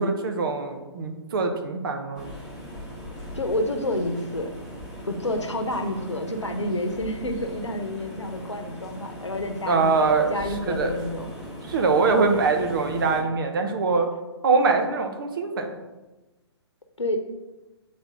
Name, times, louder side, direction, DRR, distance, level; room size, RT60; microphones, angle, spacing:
voice 1, 0.0-2.3 9.7-10.3 10.7-10.9 11.7-14.1 14.4-15.8, right 4 dB, 50° right, 5 dB, 0.9 m, -23 dB
sound 1, 2.2-13.2, equal, 5° right, 1.6 m, -39 dB
voice 2, 3.3-4.5 5.1-9.9 10.3-11.3 12.1-12.3 17.0-17.2, left 1 dB, 85° left, 5 dB, 0.9 m, -29 dB
7.8 x 4.3 x 3.6 m, 1.1 s
figure-of-eight pair, 125°, 15 cm